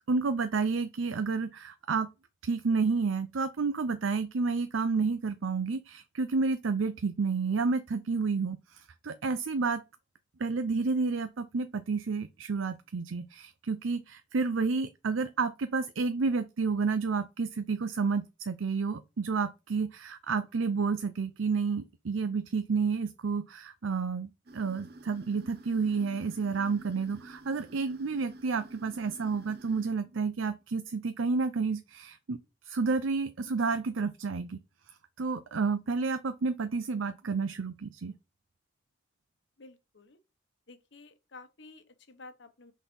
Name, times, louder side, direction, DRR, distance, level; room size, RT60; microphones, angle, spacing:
voice 1, 0.1-2.1 2.4-9.8 10.4-32.4 32.6-34.6 35.2-38.1, right 4 dB, 90° right, 0.6 m, -30 dB
sound 1, 24.5-29.9, right 2 dB, 55° right, 0.7 m, -50 dB
voice 2, 39.6-40.2 40.7-42.7, left 3 dB, 65° left, 1.1 m, -52 dB
6.1 x 4.1 x 5.3 m
head